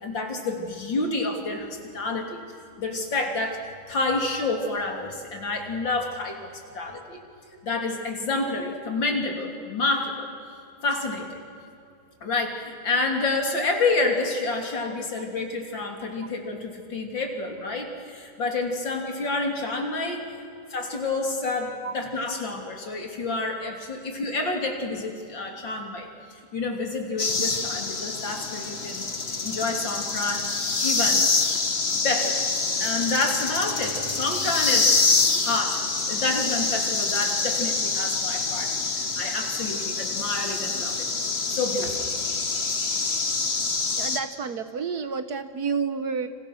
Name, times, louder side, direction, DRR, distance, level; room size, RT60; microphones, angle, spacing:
voice 1, 0.0-2.5 2.8-3.6 3.9-7.2 7.6-10.3 10.8-11.4 12.2-20.3 20.7-26.1 26.5-29.1 29.4-30.5 30.8-31.2 32.0-32.5 32.8-35.0 35.4-41.1 41.5-42.1, left 3 dB, 65° left, 3 dB, 3.9 m, -29 dB
sound 1, 27.2-44.2, left 4 dB, 35° left, 1.7 m, -26 dB
voice 2, 43.9-46.3, right 5 dB, 55° right, 10 dB, 1.4 m, -30 dB
30.0 x 27.0 x 6.4 m, 2.5 s
omnidirectional pair, 2.2 m